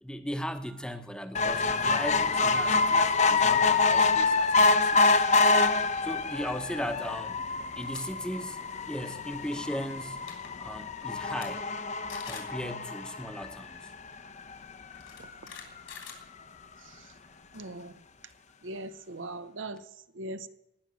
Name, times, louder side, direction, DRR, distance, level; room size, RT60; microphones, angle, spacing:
voice 1, 0.0-5.2 6.0-7.4 7.7-10.2 10.6-11.7 12.2-13.9, equal, 5° left, 8 dB, 0.9 m, -37 dB
sound 1, 1.3-13.9 14.5-14.6 14.9-15.0 15.2-15.3, left 3 dB, 35° left, 0.7 m, -26 dB
sound 2, 7.7-8.0 8.4-8.7 9.9-10.0 10.2-10.5 11.0-11.5 11.8-11.9 12.1-12.5 13.8-13.9 14.9-16.8, left 7 dB, 80° left, 3.4 m, -45 dB
voice 2, 17.5-18.0 18.6-19.8 20.1-20.5, right 2 dB, 75° right, 11 dB, 0.9 m, -40 dB
19.0 x 6.3 x 8.1 m, 0.91 s
head